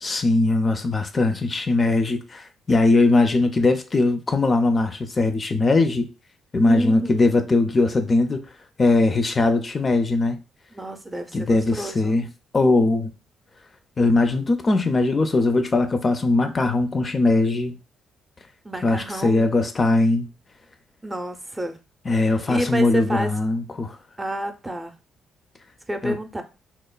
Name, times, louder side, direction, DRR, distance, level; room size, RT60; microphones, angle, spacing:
voice 1, 0.0-6.1 6.5-8.5 8.8-10.4 11.3-12.3 12.5-13.1 14.0-17.8 18.8-20.3 22.1-24.0 26.0-26.2, left 2 dB, 40° left, 0.4 m, -20 dB
voice 2, 6.6-7.3 10.7-12.3 18.6-19.5 21.0-21.8 22.3-23.3 24.2-24.9 25.9-26.4, right 1 dB, 20° right, 0.5 m, -29 dB
3.0 x 2.0 x 2.2 m
hypercardioid pair, 45°, 0 cm